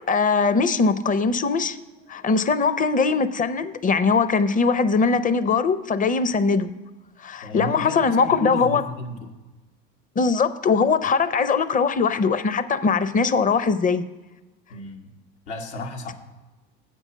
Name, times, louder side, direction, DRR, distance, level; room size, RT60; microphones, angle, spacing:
voice 1, 0.0-1.8 2.1-6.7 7.2-8.8 10.2-14.1, left 4 dB, 25° left, 14 dB, 0.6 m, -21 dB
voice 2, 7.4-9.4 14.7-15.1 15.5-16.1, left 2 dB, 85° left, 1 dB, 1.6 m, -33 dB
7.9 x 5.3 x 7.4 m, 1.1 s
hypercardioid pair, 85°, 32 cm